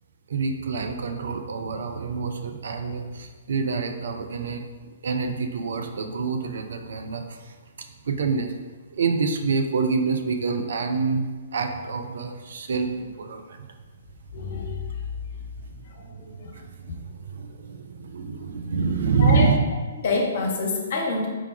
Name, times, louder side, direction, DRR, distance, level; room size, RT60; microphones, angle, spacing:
voice 1, 0.3-4.7 5.0-7.5 8.0-8.5 8.9-13.8 15.7-16.1 16.5-19.6, right 4 dB, 55° right, 5 dB, 0.4 m, -27 dB
voice 2, 14.3-14.8 16.0-16.5 19.2-19.5 20.0-21.3, left 3 dB, 50° left, 0 dB, 0.8 m, -27 dB
4.7 x 2.3 x 4.7 m, 1.4 s
figure-of-eight pair, 120°, 0 cm